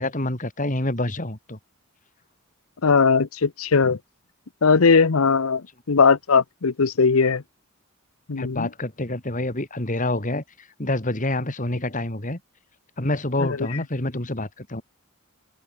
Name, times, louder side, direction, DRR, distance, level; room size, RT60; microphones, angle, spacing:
voice 1, 0.0-1.6 8.4-12.4 13.0-14.8, left 1 dB, 40° left, 2.9 m, -27 dB
voice 2, 2.8-4.0 4.6-7.4 8.3-8.7 13.4-13.5, left 5 dB, 85° left, 0.8 m, -19 dB
head